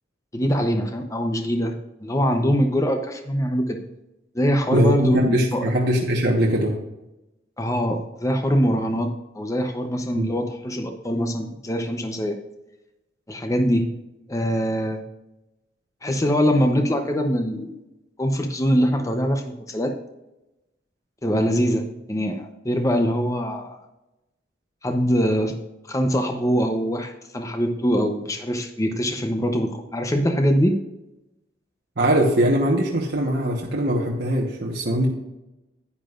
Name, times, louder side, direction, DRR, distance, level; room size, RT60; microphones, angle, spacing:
voice 1, 0.3-1.7 2.0-3.8 4.3-5.6 7.6-12.4 13.3-13.9 14.3-15.0 16.0-17.8 18.2-19.9 21.2-23.8 24.8-25.6 25.9-30.8, equal, 15° left, 5 dB, 0.7 m, -23 dB
voice 2, 4.7-6.8 10.1-10.3 32.0-35.1, equal, 60° right, -2 dB, 1.2 m, -21 dB
10.0 x 9.6 x 2.5 m, 0.95 s
head